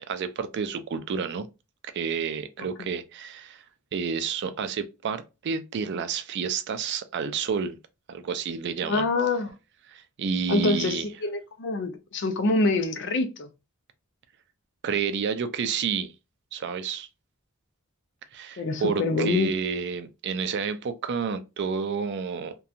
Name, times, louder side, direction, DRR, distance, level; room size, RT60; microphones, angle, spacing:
voice 1, 0.1-1.5 1.8-3.6 3.9-7.8 8.1-9.1 9.9-11.1 14.8-16.1 16.5-17.1 18.3-22.6, right 6 dB, 55° right, 0.4 m, -30 dB
voice 2, 2.6-2.9 8.8-9.5 10.5-13.5 18.6-19.5, left 3 dB, 55° left, 0.5 m, -26 dB
2.7 x 2.2 x 2.4 m
head